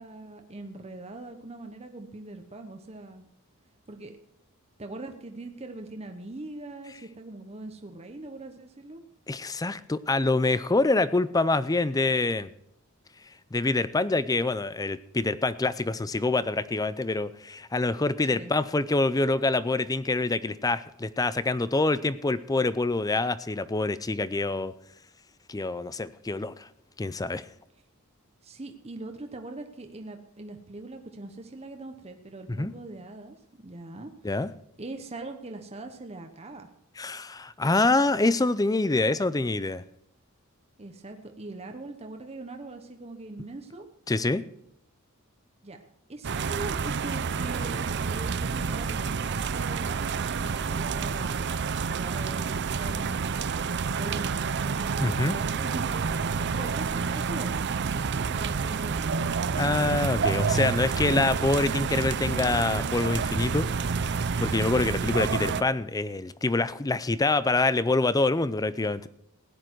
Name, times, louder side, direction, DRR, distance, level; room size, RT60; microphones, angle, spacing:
voice 1, 0.0-3.3 3.9-4.2 4.8-9.0 18.3-18.5 28.4-34.4 34.8-36.7 40.8-43.9 45.6-45.8 46.1-51.5 52.0-53.4 53.9-57.7 58.1-59.2 65.2-65.7, right 2 dB, 30° right, 5 dB, 1.0 m, -41 dB
voice 2, 9.3-12.5 13.5-24.7 25.5-26.7 27.0-27.4 32.5-32.7 34.2-34.5 37.0-39.8 44.1-44.4 55.0-55.4 59.6-63.7 64.4-69.1, left 2 dB, 15° left, 16 dB, 0.5 m, -26 dB
sound 1, 46.2-65.6, right 5 dB, 50° right, 0.6 m, -29 dB
16.0 x 10.0 x 4.6 m, 0.76 s
head